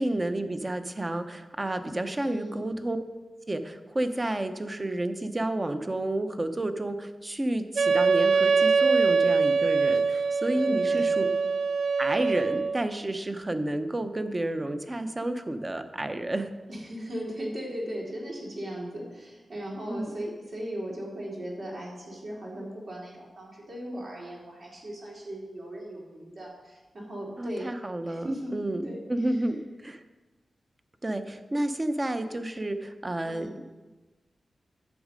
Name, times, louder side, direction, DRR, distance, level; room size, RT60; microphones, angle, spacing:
voice 1, 0.0-3.0 3.5-11.3 12.0-16.5 19.9-20.2 27.4-30.0 31.0-33.6, right 1 dB, 25° right, 9 dB, 0.7 m, -30 dB
voice 2, 2.2-2.6 10.5-11.1 16.7-27.7 28.1-29.0 33.2-33.5, equal, 60° right, -4 dB, 3.3 m, -37 dB
Wind instrument woodwind instrument, 7.8-12.8, right 4 dB, 80° right, 0.4 m, -23 dB
10.5 x 7.4 x 5.1 m, 1.2 s
wide cardioid pair, 100°, 0 cm